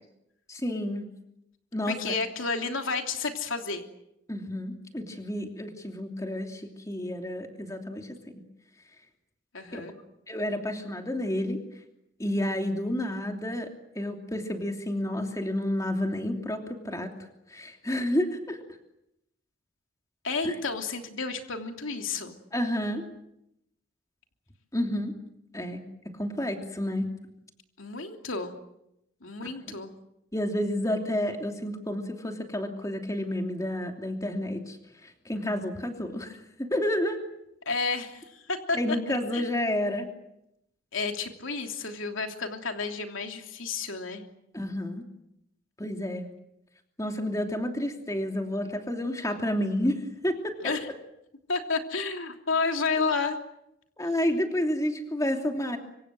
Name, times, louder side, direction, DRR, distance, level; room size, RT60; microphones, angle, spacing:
voice 1, 0.5-1.1 1.7-2.1 4.3-8.2 9.7-9.8 10.3-11.6 12.2-17.1 17.5-18.6 20.4-20.6 22.5-23.1 24.7-25.1 25.5-27.1 29.4-29.5 30.3-37.2 38.7-40.1 44.5-45.0 45.8-46.2 47.0-50.7 54.0-55.8, left 1 dB, 15° left, 4 dB, 2.9 m, -30 dB
voice 2, 1.9-3.8 9.5-9.9 20.2-22.4 27.8-28.5 29.2-29.9 37.6-39.7 40.9-44.2 50.6-50.9 51.5-53.4, left 4 dB, 90° left, 4 dB, 3.1 m, -31 dB
25.5 x 25.5 x 7.8 m, 0.82 s
head